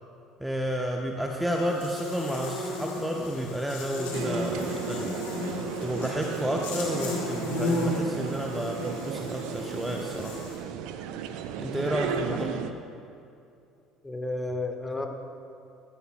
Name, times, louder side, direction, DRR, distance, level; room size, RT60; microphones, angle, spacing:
voice 1, 0.4-5.1 5.8-10.4 11.6-12.6, equal, 5° right, 0 dB, 0.9 m, -31 dB
Buzz, 1.5-10.6, left 2 dB, 75° left, 2.1 m, -34 dB
sound 1, 4.1-12.7, right 8 dB, 65° right, 0.5 m, -35 dB
voice 2, 14.0-15.1, left 2 dB, 15° left, 4 dB, 1.2 m, -32 dB
14.5 x 13.0 x 2.2 m, 2.5 s
hypercardioid pair, 60°, 0 cm